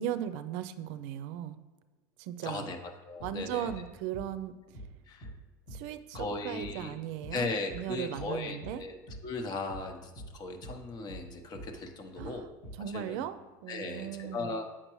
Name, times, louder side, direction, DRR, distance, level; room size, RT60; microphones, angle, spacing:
voice 1, 0.0-1.6 2.2-2.7 3.2-4.5 5.7-8.8 12.2-14.6, right 10 dB, 75° right, 11 dB, 0.5 m, -37 dB
voice 2, 2.4-2.8 3.1-3.7 5.1-5.3 6.1-6.9 7.3-9.0 9.2-12.5 12.9-13.2 13.7-14.6, left 3 dB, 40° left, 5 dB, 0.9 m, -37 dB
sound 1, 3.2-3.4 3.7-3.9 4.1-4.3 4.7-4.9 5.2-5.4 5.7-5.9 6.1-6.3 6.6-6.8 7.2-7.4 7.7-7.9 8.1-8.3 8.6-8.8 9.1-9.3 9.7-9.9 10.2-10.4 10.6-10.8 11.1-11.3 11.5-11.7 12.2-12.4 12.6-12.8, right 1 dB, 65° left, 2.2 m, -45 dB
7.9 x 5.8 x 3.1 m, 1.2 s
supercardioid pair, 115°, 10 cm